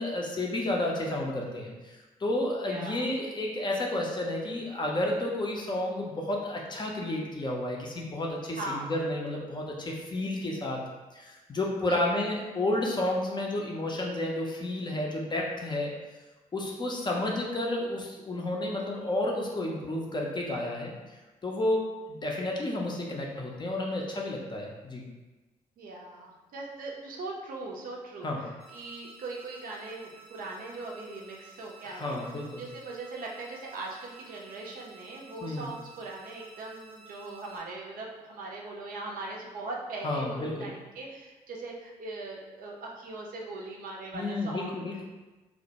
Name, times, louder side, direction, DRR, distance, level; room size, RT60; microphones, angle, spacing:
voice 1, 0.0-10.8 11.1-15.9 16.5-20.9 21.4-25.0 28.2-28.4 31.8-32.6 35.4-35.7 40.0-40.7 44.1-45.0, left 1 dB, 25° left, -1 dB, 0.5 m, -31 dB
voice 2, 2.7-3.1 8.6-8.9 11.9-12.1 25.8-32.3 32.6-44.8, right 2 dB, 50° right, -1 dB, 0.5 m, -40 dB
sound 1, 28.6-37.6, right 4 dB, 85° left, 0.4 m, -53 dB
2.1 x 2.1 x 2.7 m, 1.2 s
figure-of-eight pair, 40°, 18 cm